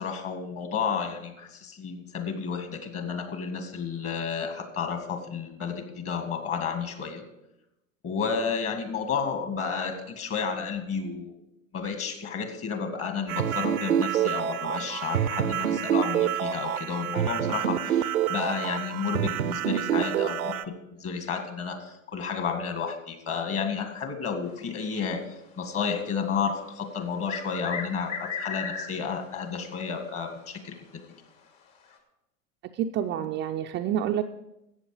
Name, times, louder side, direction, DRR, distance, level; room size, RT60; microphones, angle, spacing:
voice 1, 0.0-7.2 8.0-11.4 11.7-20.7 21.0-25.2 25.6-31.0, left 6 dB, 35° left, 6 dB, 2.1 m, -31 dB
sound 1, 13.3-20.6, right 10 dB, 85° right, 0.7 m, -27 dB
sound 2, 27.0-29.2 29.5-29.6 30.6-30.7 31.8-31.9, left 6 dB, 50° left, 2.8 m, -35 dB
voice 2, 32.8-34.2, right 10 dB, 25° right, 5 dB, 0.5 m, -28 dB
14.0 x 8.4 x 5.0 m, 0.88 s
hypercardioid pair, 95°, 42 cm